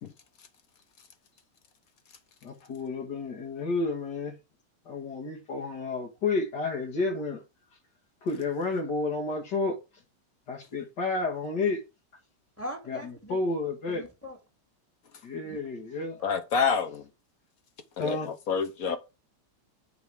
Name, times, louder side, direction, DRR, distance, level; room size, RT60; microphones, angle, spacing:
voice 1, 2.4-4.3 4.9-7.4 8.2-9.8 10.5-11.8 12.9-14.0 15.2-16.2 18.0-18.3, left 3 dB, 80° left, 2.4 m, -31 dB
voice 2, 12.6-13.4 13.9-14.4 15.4-15.6 18.9-19.0, left 1 dB, 10° left, 2.0 m, -40 dB
voice 3, 16.2-17.1 18.0-19.0, left 6 dB, 60° left, 1.3 m, -28 dB
8.1 x 5.1 x 4.9 m
omnidirectional pair, 1.8 m